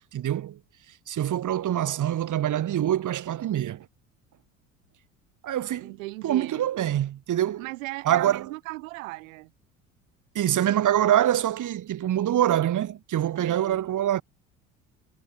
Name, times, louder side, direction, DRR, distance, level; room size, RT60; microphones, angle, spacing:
voice 1, 0.1-0.6 1.1-3.8 5.4-5.9 6.2-7.7 8.1-8.4 10.3-14.2, right 11 dB, 50° right, 2.7 m, -25 dB
voice 2, 5.8-6.7 7.6-9.5 13.4-13.8, right 22 dB, 80° right, 2.9 m, -37 dB
hypercardioid pair, 65°, 39 cm